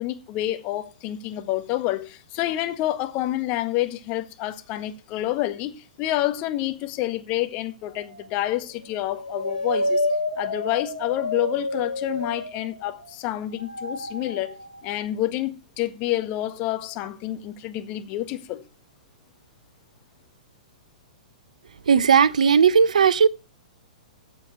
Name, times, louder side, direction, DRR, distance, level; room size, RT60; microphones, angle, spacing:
voice 1, 0.0-10.1 10.4-14.5 14.8-18.6, left 14 dB, 35° left, 1.6 m, -28 dB
sound 1, 7.9-8.5 8.9-13.1 13.6-14.9, left 1 dB, 90° left, 5.9 m, -29 dB
voice 2, 21.9-23.3, right 6 dB, 65° right, 0.7 m, -17 dB
13.5 x 7.6 x 5.8 m
figure-of-eight pair, 110°, 4 cm